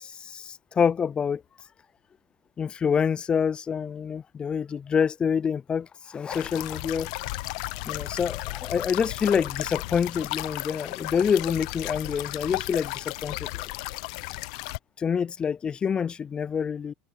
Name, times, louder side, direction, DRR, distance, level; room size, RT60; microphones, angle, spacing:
voice 1, 0.0-1.4 2.6-7.1 7.9-13.6 15.0-16.9, left 7 dB, 25° left, 0.3 m, -27 dB
sound 1, 6.3-14.8, left 22 dB, 70° left, 0.9 m, -34 dB
supercardioid pair, 110°, 4 cm